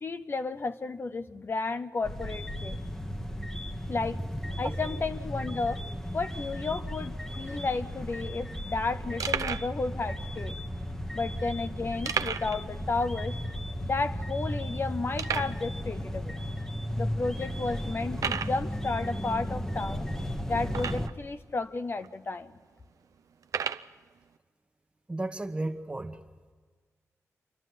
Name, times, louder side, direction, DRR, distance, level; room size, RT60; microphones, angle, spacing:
voice 1, 0.0-2.8 3.9-4.2 4.6-5.8 6.1-10.6 11.1-13.4 13.8-16.4 17.0-20.1 20.5-22.5, left 3 dB, 45° left, 10 dB, 0.6 m, -32 dB
sound 1, 2.0-21.1, equal, 10° left, 1.1 m, -35 dB
sound 2, 7.7-7.8 8.0-8.2 8.7-8.8 9.2-9.7 10.5-10.6 12.1-12.6 12.9-13.0 13.5-13.6 14.2-14.3 15.2-15.6 16.4-16.5 17.1-17.2 18.1-18.6 20.7-21.3 22.0-22.1 23.4-23.9, right 7 dB, 85° right, 0.6 m, -32 dB
voice 2, 25.1-26.2, right 2 dB, 20° right, 8 dB, 1.2 m, -33 dB
28.0 x 12.0 x 9.3 m, 1.5 s
wide cardioid pair, 95°, 6 cm